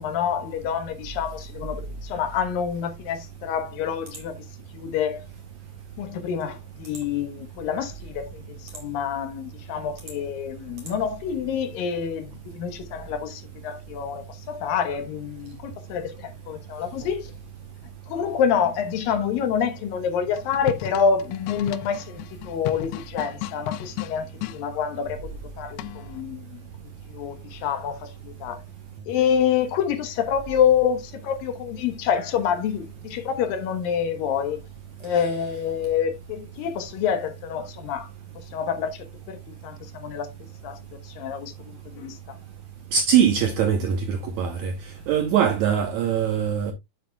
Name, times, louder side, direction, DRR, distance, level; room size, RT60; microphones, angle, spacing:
voice 1, 0.0-4.3 4.7-5.2 6.0-17.3 18.1-25.3 25.6-26.6 27.1-28.6 29.1-34.6 35.0-38.1 38.5-40.3 40.6-40.8 41.0-42.2, left 7 dB, 75° left, 2.7 m, -27 dB
sound 1, 20.3-24.6 25.8-26.2, left 18 dB, 90° left, 2.5 m, -35 dB
voice 2, 42.9-44.7 45.1-46.7, right 8 dB, 75° right, 1.7 m, -22 dB
9.3 x 7.6 x 2.2 m
omnidirectional pair, 4.3 m